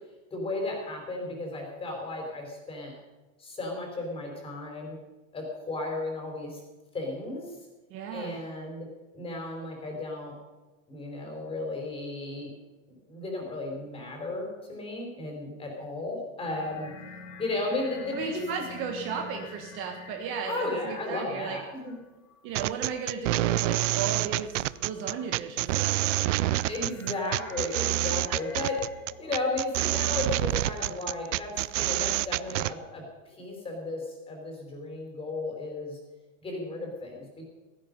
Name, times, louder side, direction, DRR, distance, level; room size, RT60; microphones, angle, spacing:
voice 1, 0.3-2.9 3.4-5.0 5.3-6.6 6.9-7.6 8.1-8.9 9.1-10.3 10.9-12.5 12.9-16.9 17.4-18.6 20.5-21.9 26.7-28.8 29.2-36.0 36.4-37.4, left 2 dB, 15° left, 1 dB, 4.3 m, -34 dB
voice 2, 7.9-8.4 18.1-21.6 22.4-26.5, right 6 dB, 30° right, 3 dB, 1.5 m, -35 dB
sound 1, 16.4-21.5 21.9-22.8 24.3-29.4, left 3 dB, 75° left, 5.6 m, -48 dB
sound 2, 22.5-32.7, right 16 dB, 65° right, 0.6 m, -27 dB
16.5 x 15.5 x 5.4 m, 1.2 s
supercardioid pair, 160°, 41 cm